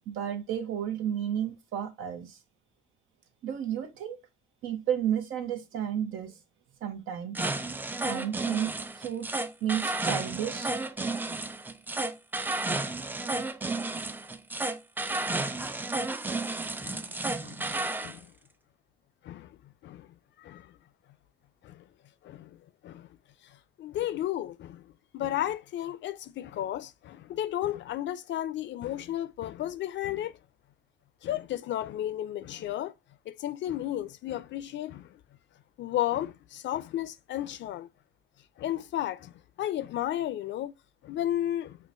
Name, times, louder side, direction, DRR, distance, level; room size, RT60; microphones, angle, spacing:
voice 1, 0.1-2.4 3.4-4.2 4.6-6.4 6.8-7.4 8.0-9.3 9.6-10.8, right 9 dB, 80° right, 0.8 m, -32 dB
sound 1, 7.3-18.2, right 2 dB, 10° right, 0.3 m, -32 dB
voice 2, 16.8-17.1 17.4-17.7 18.0-18.3 19.2-19.6 19.8-20.1 20.4-20.7 21.6-21.8 22.2-23.1 23.8-30.4 31.2-32.9 33.3-35.2 35.8-37.9 38.6-40.7 41.0-41.8, left 12 dB, 65° left, 0.4 m, -33 dB
5.6 x 2.2 x 2.5 m
cardioid pair, 90°, 20 cm